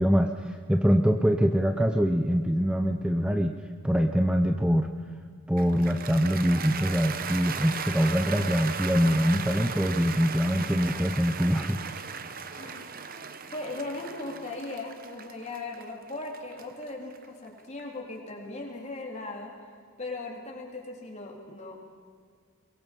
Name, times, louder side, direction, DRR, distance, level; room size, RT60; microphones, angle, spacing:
voice 1, 0.0-3.5 3.8-4.9 5.5-11.8, equal, 5° right, 5 dB, 0.7 m, -24 dB
Cheering / Applause, 5.6-17.8, right 6 dB, 40° right, 1.0 m, -37 dB
voice 2, 13.5-19.5 20.0-21.7, left 2 dB, 30° left, -1 dB, 3.7 m, -38 dB
23.0 x 22.0 x 5.4 m, 2.1 s
head